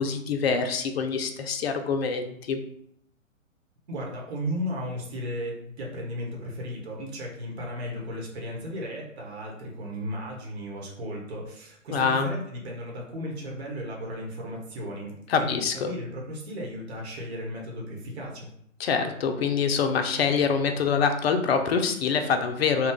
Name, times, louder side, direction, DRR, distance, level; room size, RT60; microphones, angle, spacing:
voice 1, 0.0-2.6 11.9-12.3 15.3-15.9 18.8-22.9, left 5 dB, 50° left, 6 dB, 0.5 m, -25 dB
voice 2, 3.9-15.1 15.4-15.6 15.9-18.5, equal, 55° right, -1 dB, 1.2 m, -35 dB
3.0 x 2.3 x 3.7 m, 0.72 s
figure-of-eight pair, 125°, 40 cm